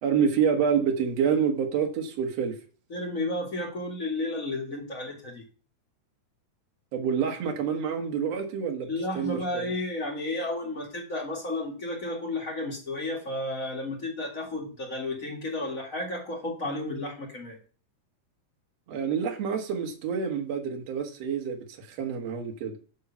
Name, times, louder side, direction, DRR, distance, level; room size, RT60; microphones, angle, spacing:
voice 1, 0.0-2.5 6.9-8.9 9.1-9.7 18.9-22.8, right 7 dB, 60° right, 2 dB, 2.4 m, -27 dB
voice 2, 2.9-5.4 8.9-17.6, left 2 dB, 30° left, -1 dB, 2.3 m, -32 dB
9.4 x 3.8 x 7.1 m, 0.39 s
omnidirectional pair, 3.6 m